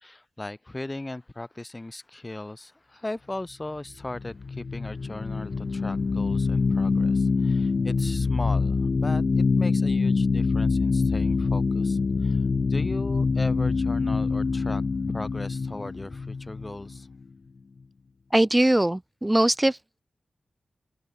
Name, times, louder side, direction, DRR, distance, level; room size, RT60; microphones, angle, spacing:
voice 1, 0.0-12.4 12.7-14.8 15.1-17.1, left 2 dB, 20° left, 2.4 m, -37 dB
sound 1, 4.0-17.2, left 4 dB, 55° left, 0.6 m, -25 dB
voice 2, 18.3-20.0, right 1 dB, 15° right, 1.4 m, -21 dB
open air
wide cardioid pair, 85°, 0 cm